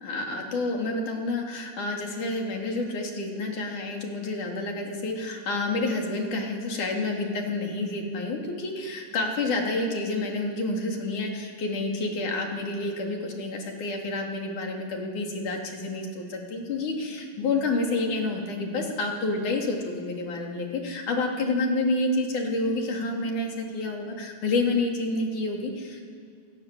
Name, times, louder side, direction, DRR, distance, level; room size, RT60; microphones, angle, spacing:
voice 1, 0.0-26.0, left 2 dB, 85° left, 1 dB, 4.8 m, -29 dB
30.0 x 25.0 x 7.8 m, 2.3 s
omnidirectional pair, 3.4 m